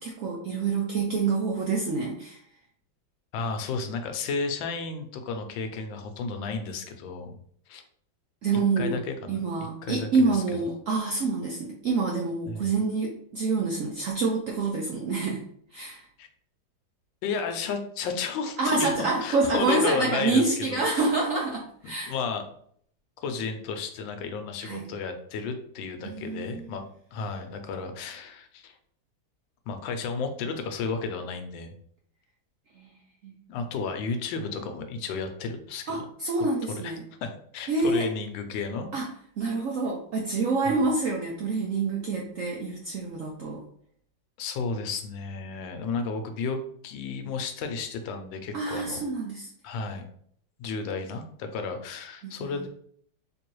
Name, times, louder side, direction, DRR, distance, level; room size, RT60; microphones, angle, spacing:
voice 1, 0.0-2.4 8.4-9.0 9.3-15.4 15.7-16.0 18.6-22.1 24.6-24.9 26.0-26.6 32.8-32.9 33.2-33.3 35.9-37.0 37.7-38.1 38.9-39.1 39.4-43.6 48.5-49.5 52.2-52.6, right 3 dB, 70° right, -1 dB, 0.7 m, -27 dB
voice 2, 3.3-7.4 7.7-7.8 8.8-9.4 9.8-10.4 12.5-12.7 16.2-16.3 17.2-20.4 20.7-21.1 22.1-22.4 23.2-26.8 27.1-28.8 29.7-31.7 33.5-36.0 36.7-37.0 37.2-38.9 40.6-40.9 44.4-49.0 49.6-50.0 50.6-52.7, left 4 dB, 85° left, 6 dB, 1.4 m, -33 dB
3.6 x 3.0 x 3.0 m, 0.62 s
omnidirectional pair, 2.0 m